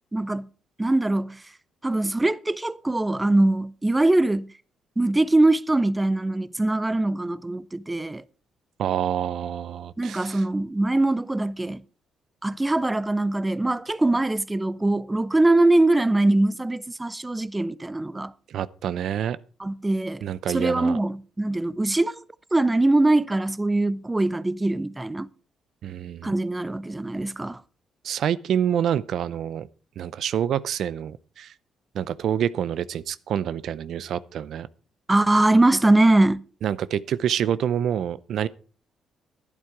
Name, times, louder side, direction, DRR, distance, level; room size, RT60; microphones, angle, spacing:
voice 1, 0.1-0.5 0.8-1.4 1.8-4.5 5.0-8.2 10.0-11.8 12.4-18.3 19.6-22.2 22.5-25.3 26.2-27.6 35.1-36.4, right 2 dB, 15° right, 0.6 m, -22 dB
voice 2, 8.8-10.4 18.5-19.4 20.2-21.0 25.8-26.3 28.0-29.7 30.0-31.5 31.9-34.7 36.6-38.5, right 9 dB, 70° right, 0.5 m, -27 dB
12.0 x 10.5 x 4.7 m
cardioid pair, 90°, 0 cm